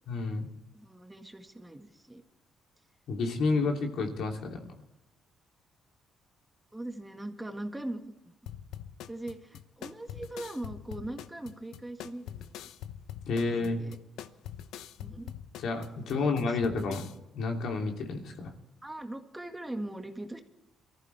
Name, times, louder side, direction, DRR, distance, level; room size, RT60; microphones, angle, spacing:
voice 1, 0.1-0.5 3.1-4.6 13.3-13.8 15.6-17.1 17.3-18.5, left 3 dB, 75° left, 2 dB, 3.0 m, -30 dB
voice 2, 0.7-2.2 3.5-3.6 6.7-8.1 9.1-12.7 13.7-14.0 15.0-15.3 16.0-17.0 18.8-20.4, right 1 dB, 10° right, 5 dB, 1.8 m, -41 dB
sound 1, 8.5-17.1, left 10 dB, 90° left, 0.8 m, -44 dB
23.0 x 14.5 x 3.5 m, 0.92 s
cardioid pair, 90°, 0 cm